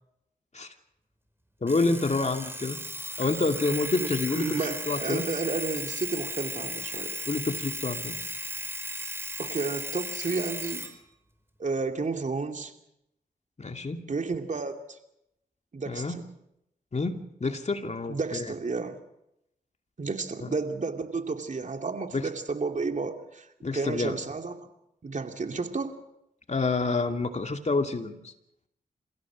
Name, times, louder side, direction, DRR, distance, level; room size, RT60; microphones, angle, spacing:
voice 1, 1.6-2.8 3.2-4.5 4.9-5.3 7.3-8.2 13.6-14.0 15.9-16.2 16.9-18.5 20.4-20.5 22.1-22.3 23.6-24.2 26.5-28.3, left 3 dB, 45° left, 5 dB, 2.5 m, -28 dB
Alarm, 1.7-10.9, equal, 15° right, 4.3 m, -36 dB
voice 2, 4.3-7.2 9.4-10.9 11.6-12.7 14.1-15.0 15.7-16.2 18.1-19.0 20.0-23.5 23.7-24.5 25.0-26.0, right 4 dB, 50° right, 5 dB, 2.7 m, -31 dB
28.5 x 16.0 x 6.3 m, 0.83 s
supercardioid pair, 40°, 16 cm